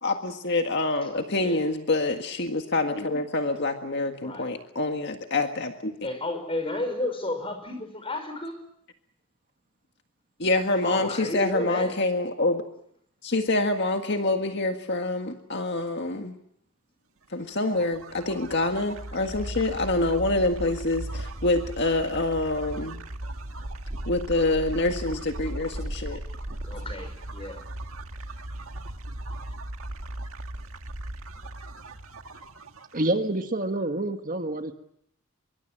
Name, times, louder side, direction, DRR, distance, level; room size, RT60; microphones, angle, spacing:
voice 1, 0.0-5.9 10.4-12.6 13.2-16.4 17.3-23.0 24.1-26.2, left 2 dB, 55° left, 5 dB, 1.8 m, -26 dB
voice 2, 1.3-1.6 4.2-4.5 6.0-8.6 10.8-11.9 26.6-27.6, left 2 dB, 25° left, 8 dB, 5.8 m, -32 dB
sound 1, 17.5-33.2, right 1 dB, 70° right, 1.9 m, -37 dB
voice 3, 32.9-34.7, right 1 dB, 40° right, 6 dB, 1.7 m, -27 dB
25.0 x 23.0 x 7.8 m, 0.72 s
head